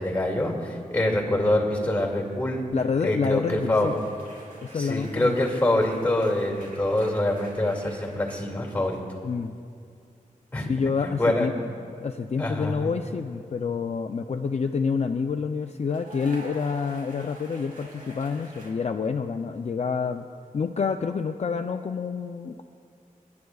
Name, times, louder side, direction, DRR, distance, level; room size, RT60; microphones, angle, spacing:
voice 1, 0.0-2.6 3.0-4.0 4.7-9.0 10.5-10.7 11.0-11.5 12.4-12.9, left 1 dB, 10° left, 0 dB, 2.3 m, -25 dB
voice 2, 2.7-3.9 4.6-5.3 9.2-9.6 10.7-11.5 11.9-20.3 20.5-22.6, left 5 dB, 50° left, 5 dB, 0.4 m, -28 dB
sound 1, 3.7-9.2 9.5-9.9 11.8-12.0 15.9-18.7, right 1 dB, 80° right, 3.2 m, -47 dB
28.5 x 10.5 x 2.4 m, 2.3 s
wide cardioid pair, 95°, 14 cm